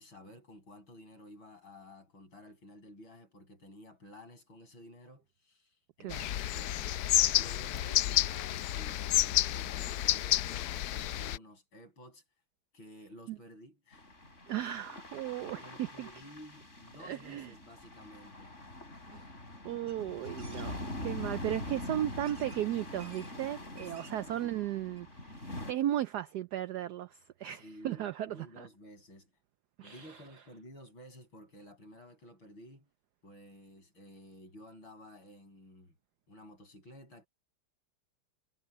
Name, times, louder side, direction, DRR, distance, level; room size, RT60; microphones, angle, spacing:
voice 1, 0.0-7.0 7.4-12.2 12.7-14.1 15.6-18.6 23.8-24.6 27.5-29.3 29.8-32.9 33.2-35.9 36.3-37.3, left 1 dB, 65° left, 8.3 m, -53 dB
voice 2, 6.0-6.3 13.3-13.4 14.5-16.1 17.0-17.5 19.1-19.2 19.6-28.7 29.8-30.2, right 12 dB, 80° right, 0.9 m, -36 dB
sound 1, 6.1-11.4, left 13 dB, 85° left, 0.8 m, -30 dB
sound 2, 13.9-25.7, left 1 dB, 35° left, 5.8 m, -44 dB
sound 3, 19.9-20.0 20.4-20.7 21.6-21.7 22.2-22.6 23.0-23.3 23.6-24.3 24.7-24.8 25.0-25.1, right 4 dB, 55° right, 2.5 m, -54 dB
omnidirectional pair, 2.3 m